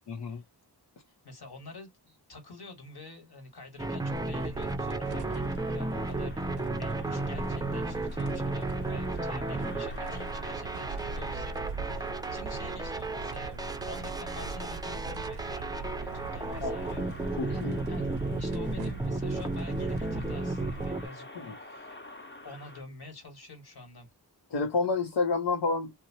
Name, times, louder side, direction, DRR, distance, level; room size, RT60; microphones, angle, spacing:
voice 1, 0.1-0.4 16.6-16.8 17.4-17.8 21.4-21.6 24.5-25.9, left 4 dB, 80° left, 0.7 m, -29 dB
voice 2, 1.1-13.6 13.9-17.1 17.9-18.1 18.4-21.3 21.6-22.0 22.4-24.1, left 3 dB, 65° left, 1.5 m, -48 dB
sound 1, 3.8-21.1, right 2 dB, 10° right, 0.4 m, -34 dB
sound 2, 4.1-20.9, right 4 dB, 65° right, 0.5 m, -40 dB
sound 3, 5.0-22.8, left 2 dB, 25° left, 0.9 m, -50 dB
2.8 x 2.1 x 2.6 m
wide cardioid pair, 60°, 41 cm